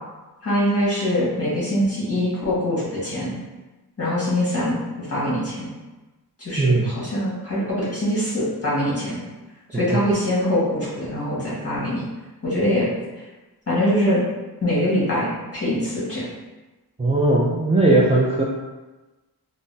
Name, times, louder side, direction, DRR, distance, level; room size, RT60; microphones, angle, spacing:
voice 1, 0.4-3.3 4.0-5.7 6.4-9.2 9.7-12.0 12.4-12.9 13.7-14.2 14.6-16.2, left 1 dB, 35° left, -9 dB, 1.5 m, -23 dB
voice 2, 6.6-6.9 9.7-10.0 17.0-18.4, right 2 dB, 15° right, -6 dB, 0.4 m, -18 dB
3.8 x 2.0 x 2.6 m, 1.1 s
wide cardioid pair, 95°, 38 cm